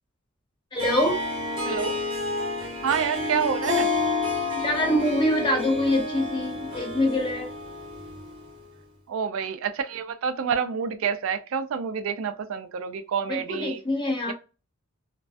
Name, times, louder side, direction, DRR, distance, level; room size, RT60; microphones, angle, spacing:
voice 1, 0.7-1.2 4.6-7.5 13.3-14.3, left 1 dB, 20° left, 0.7 m, -25 dB
Harp, 0.8-8.5, left 3 dB, 25° right, 0.8 m, -29 dB
voice 2, 1.7-2.0 2.8-3.9 9.1-13.8 14.3-14.4, right 6 dB, 70° right, 0.3 m, -28 dB
2.3 x 2.2 x 2.4 m
head